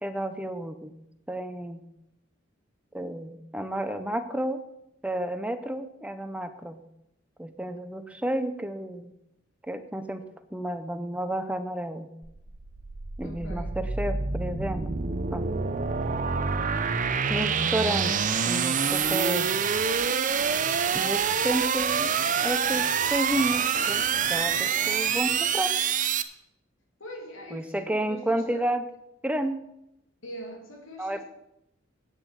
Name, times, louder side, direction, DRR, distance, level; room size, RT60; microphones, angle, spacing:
voice 1, 0.0-0.9 1.3-1.8 2.9-4.6 5.0-6.8 7.4-9.1 9.7-10.2 10.5-12.1 13.2-15.0 15.3-15.5 17.3-18.2 18.4-19.5 20.9-22.1 22.4-25.7 27.5-28.8 29.2-29.6 31.0-31.2, right 1 dB, 5° right, 9 dB, 0.7 m, -31 dB
sound 1, 12.2-26.2, right 6 dB, 40° right, 0.7 m, -26 dB
voice 2, 13.2-13.8 27.0-28.7 30.2-31.2, equal, 90° left, 2 dB, 2.5 m, -42 dB
9.1 x 7.5 x 8.1 m, 0.83 s
head